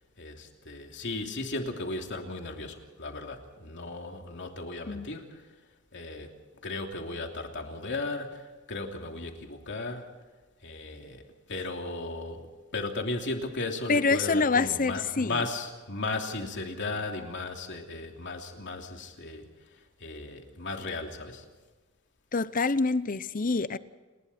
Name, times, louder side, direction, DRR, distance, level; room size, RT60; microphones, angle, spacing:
voice 1, 0.2-5.5 5.9-6.3 6.6-10.2 10.6-12.5 12.7-21.4, left 2 dB, 55° left, 3 dB, 3.0 m, -36 dB
voice 2, 13.9-15.4 22.3-23.8, left 4 dB, 40° left, 15 dB, 0.8 m, -26 dB
29.5 x 20.5 x 4.4 m, 1.3 s
head